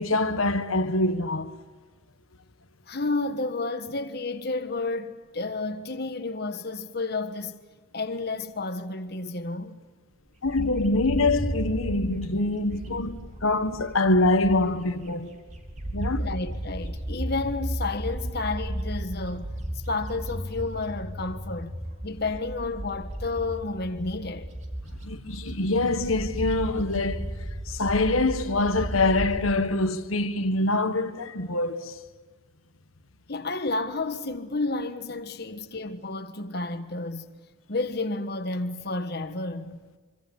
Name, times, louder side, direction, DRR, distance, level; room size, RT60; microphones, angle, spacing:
voice 1, 0.0-1.6 10.4-15.4 15.9-16.3 25.0-32.0, left 2 dB, 90° left, 1.7 m, -25 dB
voice 2, 2.9-7.6 7.9-9.8 16.2-19.5 19.9-21.7 22.0-24.5 33.3-37.2 37.7-39.8, left 3 dB, 50° left, 1.5 m, -31 dB
Bird, 10.5-14.9 15.3-29.5, equal, 35° right, 3.6 m, -34 dB
25.5 x 25.5 x 7.3 m
head